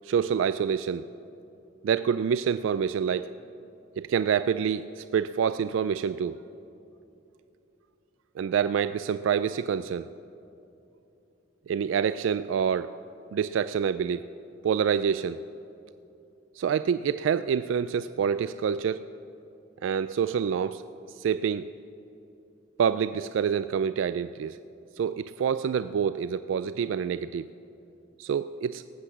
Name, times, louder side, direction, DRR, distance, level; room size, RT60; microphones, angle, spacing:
voice 1, 0.0-1.1 1.8-3.3 4.0-6.4 8.4-10.1 11.7-12.9 13.3-14.2 14.6-15.4 16.6-19.0 19.8-20.8 21.2-21.7 22.8-24.6 25.0-27.5 28.2-28.8, right 7 dB, 75° right, 13 dB, 0.3 m, -27 dB
18.5 x 7.8 x 7.2 m, 2.8 s
head